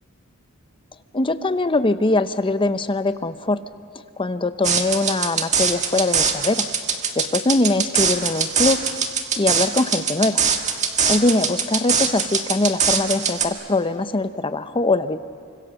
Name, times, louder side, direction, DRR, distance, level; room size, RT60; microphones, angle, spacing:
voice 1, 1.1-3.6 4.2-6.6 7.2-8.8 9.4-10.4 11.0-15.2, left 2 dB, 25° left, 11 dB, 0.8 m, -22 dB
sound 1, 4.6-13.5, right 6 dB, 35° right, 1.7 m, -22 dB
29.5 x 25.5 x 7.0 m, 2.3 s
head